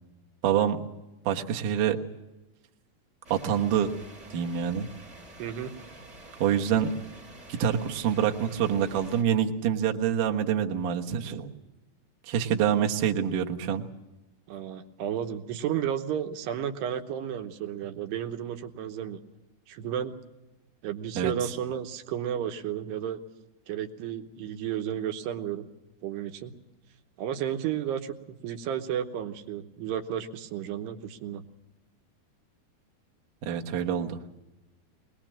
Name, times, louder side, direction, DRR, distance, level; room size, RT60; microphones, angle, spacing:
voice 1, 0.4-0.8 1.3-2.0 3.3-3.9 4.3-4.9 6.4-6.9 7.5-11.5 12.3-13.9 21.2-21.3 33.4-34.2, right 9 dB, 60° right, 2 dB, 2.4 m, -26 dB
sound 1, 3.2-9.2, right 1 dB, 35° right, 0.9 m, -48 dB
voice 2, 5.4-5.7 14.5-19.2 19.7-20.2 20.8-23.2 23.7-25.7 26.0-26.5 27.2-31.4, right 9 dB, 85° right, 6 dB, 3.1 m, -32 dB
21.5 x 21.0 x 7.5 m, 1.0 s
omnidirectional pair, 4.8 m